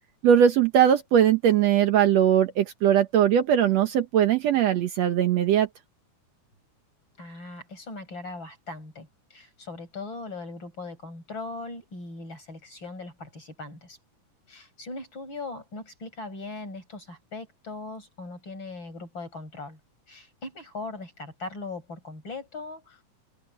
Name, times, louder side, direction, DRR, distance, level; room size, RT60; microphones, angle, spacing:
voice 1, 0.2-5.7, right 9 dB, 70° right, 2.1 m, -20 dB
voice 2, 7.2-14.0 14.5-19.8 20.1-23.0, left 3 dB, 40° left, 6.9 m, -39 dB
omnidirectional pair, 3.4 m